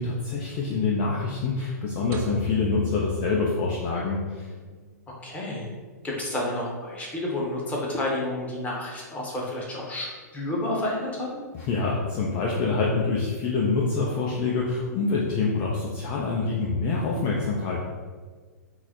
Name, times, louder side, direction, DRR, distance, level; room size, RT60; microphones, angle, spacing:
voice 1, 0.0-4.5 11.5-17.8, left 4 dB, 35° left, -3 dB, 0.5 m, -26 dB
sound 1, 2.1-4.4, left 3 dB, 30° right, 0.4 m, -37 dB
voice 2, 5.2-5.7 6.0-10.1 10.3-11.4, left 1 dB, 15° left, -3 dB, 0.9 m, -30 dB
3.9 x 2.0 x 4.3 m, 1.5 s
figure-of-eight pair, 115°, 9 cm